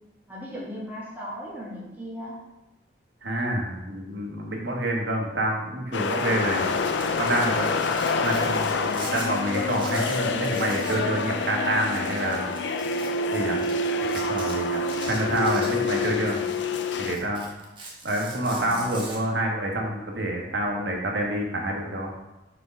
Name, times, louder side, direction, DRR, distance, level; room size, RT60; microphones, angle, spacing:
voice 1, 0.3-2.4 18.5-19.1, equal, 10° right, -6 dB, 1.5 m, -37 dB
voice 2, 3.2-6.7 7.2-7.7 8.2-12.5 13.3-13.6 14.0-16.4 17.0-17.5 18.0-22.1, right 1 dB, 70° right, 0 dB, 1.3 m, -27 dB
sound 1, 5.9-17.2, left 3 dB, 75° left, 0.4 m, -27 dB
Domestic sounds home sounds, 6.8-9.3 9.5-11.1 11.3-11.4 12.0-13.1 13.6-13.7 14.0-14.5 14.9-16.1 16.5-19.2, right 3 dB, 25° right, 1.2 m, -41 dB
4.9 x 4.6 x 5.2 m, 1.0 s
head